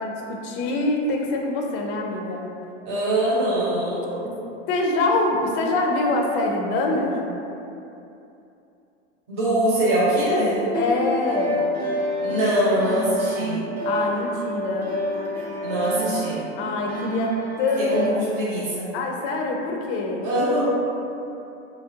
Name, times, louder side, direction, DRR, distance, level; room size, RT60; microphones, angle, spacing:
voice 1, 0.0-2.5 4.7-7.2 10.7-11.6 13.8-14.9 16.6-18.0 18.9-20.3, left 2 dB, 35° left, 1 dB, 0.4 m, -24 dB
voice 2, 2.8-4.3 9.3-10.6 12.2-13.6 15.6-16.4 17.8-18.9 20.2-20.7, right 1 dB, 50° right, -9 dB, 1.0 m, -23 dB
sound 1, 10.5-18.1, right 1 dB, 25° right, 0.6 m, -28 dB
3.0 x 2.4 x 2.7 m, 2.7 s
supercardioid pair, 130°, 34 cm